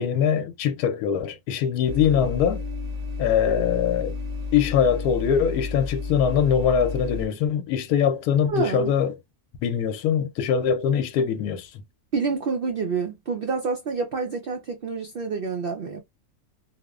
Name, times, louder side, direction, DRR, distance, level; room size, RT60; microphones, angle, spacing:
voice 1, 0.0-2.6 3.2-4.2 4.5-9.2 9.6-11.7, left 8 dB, 85° left, 1.1 m, -22 dB
sound 1, 1.9-7.3, left 4 dB, 40° right, 0.6 m, -32 dB
voice 2, 8.5-8.9 12.1-16.0, right 4 dB, 85° right, 0.5 m, -28 dB
2.8 x 2.0 x 2.3 m
omnidirectional pair, 1.6 m